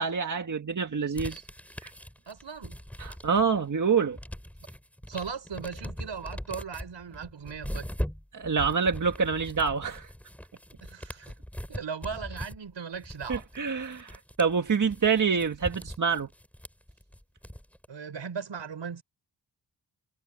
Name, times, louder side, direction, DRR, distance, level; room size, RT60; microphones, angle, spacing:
voice 1, 0.0-1.4 1.8-1.9 3.0-4.2 8.3-10.1 13.3-16.3, right 5 dB, 45° right, 1.6 m, -26 dB
sound 1, 1.1-3.6 3.9-17.9, equal, 5° left, 6.1 m, -40 dB
voice 2, 2.3-2.8 5.1-7.9 10.8-11.3 11.7-13.4 17.9-19.0, right 6 dB, 80° right, 6.2 m, -38 dB
wide cardioid pair, 170°, 44 cm